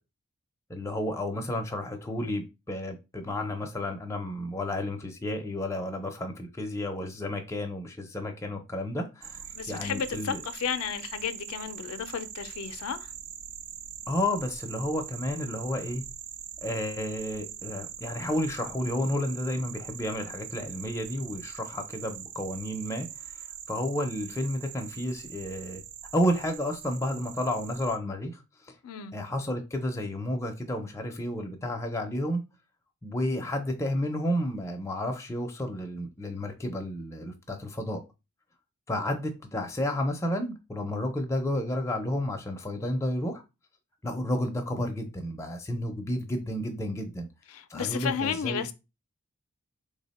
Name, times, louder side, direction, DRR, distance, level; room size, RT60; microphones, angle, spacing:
voice 1, 0.7-10.4 14.1-16.0 16.6-23.3 23.7-25.8 26.1-28.4 29.1-32.4 33.0-38.0 38.9-43.4 44.0-47.3 47.7-48.7, left 1 dB, 15° left, 0.4 m, -31 dB
sound 1, 9.2-28.0, right 10 dB, 80° right, 0.4 m, -42 dB
voice 2, 9.5-13.1 28.8-29.1 47.5-48.7, left 7 dB, 75° left, 0.4 m, -33 dB
3.3 x 2.1 x 4.0 m
head